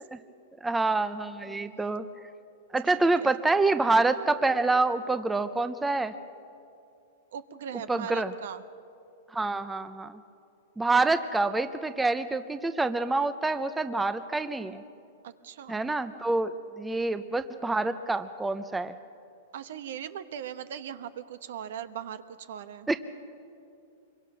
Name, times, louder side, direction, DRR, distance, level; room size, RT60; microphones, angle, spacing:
voice 1, 0.6-2.1 2.7-6.1 7.9-8.3 9.3-10.2 10.8-14.8 15.7-18.9 22.9-23.0, right 3 dB, 10° right, 11 dB, 0.6 m, -27 dB
voice 2, 1.5-1.9 2.8-3.3 7.3-8.6 15.2-15.8 19.5-22.9, right 9 dB, 75° right, 11 dB, 1.0 m, -40 dB
25.0 x 23.0 x 6.2 m, 2.7 s
hypercardioid pair, 135°, 0 cm